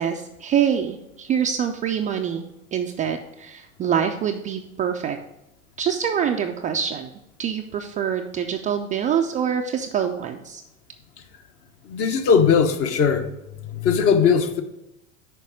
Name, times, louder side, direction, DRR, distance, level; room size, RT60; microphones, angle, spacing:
voice 1, 0.0-2.4 2.7-5.2 5.8-7.1 7.4-10.6, right 8 dB, 20° right, 0.4 m, -25 dB
voice 2, 11.9-13.3 13.7-14.6, left 6 dB, 35° left, 1.0 m, -19 dB
6.7 x 4.7 x 6.3 m
figure-of-eight pair, 90°, 39 cm